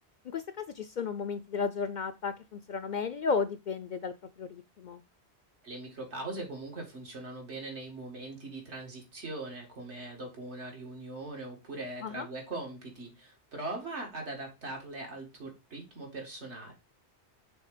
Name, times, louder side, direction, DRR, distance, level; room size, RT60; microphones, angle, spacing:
voice 1, 0.2-5.0 12.0-12.3, left 5 dB, 55° left, 11 dB, 0.5 m, -34 dB
voice 2, 5.6-16.7, right 2 dB, 80° right, 1 dB, 2.4 m, -41 dB
6.3 x 3.7 x 4.9 m, 0.26 s
omnidirectional pair, 1.1 m